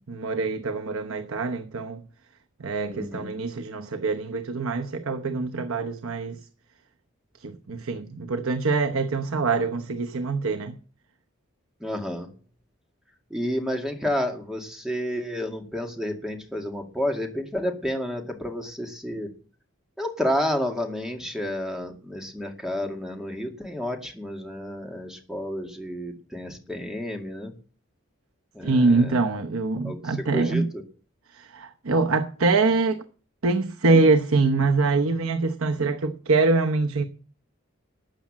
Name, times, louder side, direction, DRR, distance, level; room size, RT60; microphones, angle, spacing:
voice 1, 0.1-2.0 2.6-6.4 7.4-10.7 28.6-30.7 31.3-33.0 33.4-37.0, right 3 dB, 90° right, 1.0 m, -24 dB
voice 2, 2.9-3.3 11.8-12.3 13.3-19.3 20.0-27.5 28.5-29.2 29.8-30.8, equal, 5° right, 2.1 m, -30 dB
13.0 x 8.7 x 7.4 m
head